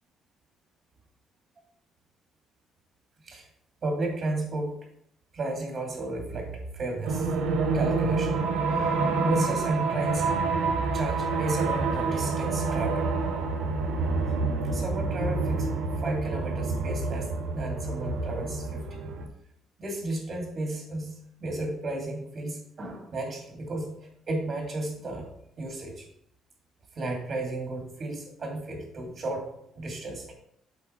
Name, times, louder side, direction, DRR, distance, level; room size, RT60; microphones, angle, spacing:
voice 1, 3.8-4.8 5.3-7.3 7.7-8.4 8.7-10.4 10.9-13.1 14.6-15.7 16.0-18.9 19.8-23.9 24.3-25.3 25.6-26.0 27.0-29.5 29.8-30.3, right 2 dB, 45° right, 1 dB, 2.3 m, -33 dB
sound 1, 7.0-19.3, right 4 dB, 90° right, 0.8 m, -28 dB
7.4 x 4.4 x 4.4 m, 0.70 s
cardioid pair, 95°, 0 cm